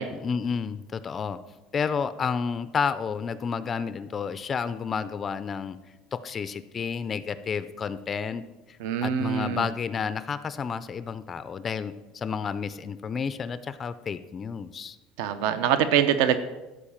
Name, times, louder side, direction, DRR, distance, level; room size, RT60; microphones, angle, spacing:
voice 1, 0.1-1.4 1.7-5.8 6.1-8.4 8.7-15.0, left 6 dB, 20° left, 14 dB, 0.3 m, -31 dB
voice 2, 8.8-9.7 15.2-16.4, right 9 dB, 75° right, 11 dB, 0.7 m, -24 dB
13.5 x 4.9 x 7.1 m, 1.1 s
cardioid pair, 175°, 0 cm